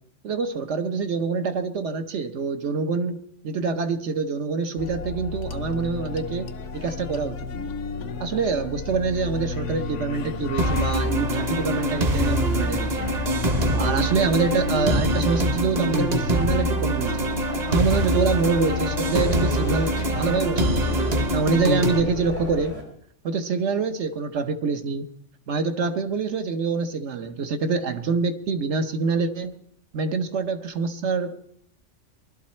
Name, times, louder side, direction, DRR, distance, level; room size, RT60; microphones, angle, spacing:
voice 1, 0.2-7.4 8.2-13.1 13.8-17.3 17.7-20.9 21.3-22.7 23.2-25.1 25.5-29.6 29.9-31.4, right 4 dB, 70° right, 8 dB, 1.2 m, -26 dB
sound 1, 4.8-22.7, left 4 dB, 80° left, 1.1 m, -33 dB
sound 2, 10.6-22.0, right 1 dB, 40° right, 0.9 m, -24 dB
sound 3, 17.8-22.8, right 1 dB, 90° right, 3.1 m, -39 dB
20.0 x 12.0 x 4.3 m, 0.68 s
omnidirectional pair, 1.2 m